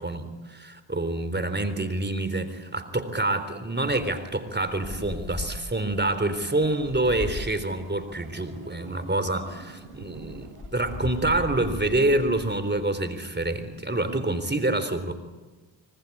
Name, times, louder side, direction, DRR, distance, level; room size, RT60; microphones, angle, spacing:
voice 1, 0.0-15.1, right 2 dB, 20° right, 11 dB, 3.7 m, -27 dB
Wind, 3.8-13.6, left 3 dB, 40° left, 4.5 m, -40 dB
sound 1, 6.5-11.3, right 5 dB, 85° right, 7.7 m, -49 dB
25.0 x 25.0 x 8.6 m, 1.2 s
supercardioid pair, 50°, 49 cm